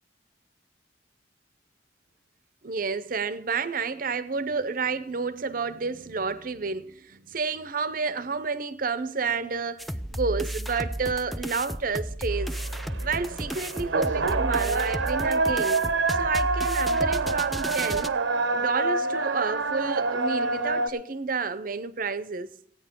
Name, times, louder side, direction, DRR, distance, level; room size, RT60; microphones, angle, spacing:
voice 1, 2.6-12.6 13.0-15.8 16.1-18.2 18.5-22.5, right 4 dB, 45° right, 0.7 m, -30 dB
sound 1, 9.8-18.1, equal, ahead, 0.4 m, -33 dB
sound 2, 12.3-20.9, right 3 dB, 80° right, 0.9 m, -27 dB
15.5 x 9.4 x 5.3 m
head